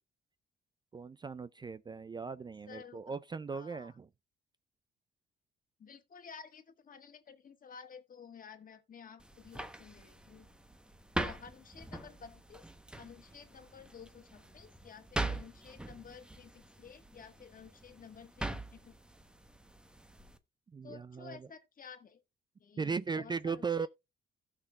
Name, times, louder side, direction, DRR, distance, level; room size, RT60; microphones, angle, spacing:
voice 1, 0.9-4.1 20.7-21.5 22.8-23.9, right 5 dB, 25° right, 0.3 m, -37 dB
voice 2, 2.7-3.0 3.5-3.9 5.8-10.5 11.1-12.7 12.9-18.9 20.8-22.2 22.6-23.9, left 6 dB, 45° left, 1.5 m, -53 dB
sound 1, 9.2-20.4, right 1 dB, 5° right, 0.9 m, -43 dB
16.5 x 5.7 x 2.3 m
cardioid pair, 85°, 19 cm